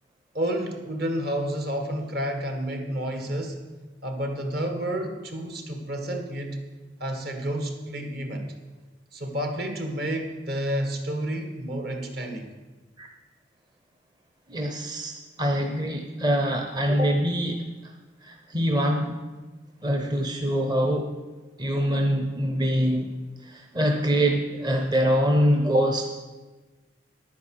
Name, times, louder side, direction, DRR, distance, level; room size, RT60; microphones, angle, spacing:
voice 1, 0.3-3.6 4.0-6.6 7.0-8.5 9.1-12.5, right 1 dB, 55° right, 5 dB, 1.6 m, -30 dB
voice 2, 14.5-15.1 15.4-17.6 18.2-19.2 19.8-21.1 21.6-23.1 23.4-26.0, equal, 25° right, 4 dB, 0.7 m, -24 dB
10.5 x 9.3 x 6.5 m, 1.3 s
head